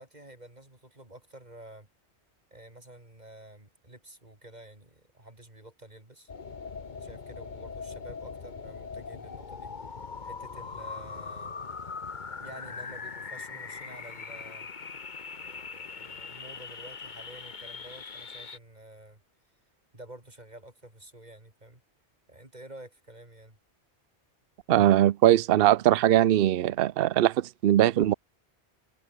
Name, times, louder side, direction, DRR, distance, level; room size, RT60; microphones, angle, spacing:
voice 1, 0.0-1.9 2.5-6.3 7.0-11.6 12.4-14.7 15.4-19.2 19.9-21.8 22.3-23.6, right 1 dB, 40° right, 4.7 m, -50 dB
sound 1, 6.3-18.6, left 5 dB, 45° left, 1.3 m, -41 dB
voice 2, 24.7-28.1, right 12 dB, 60° right, 0.8 m, -21 dB
omnidirectional pair, 1.2 m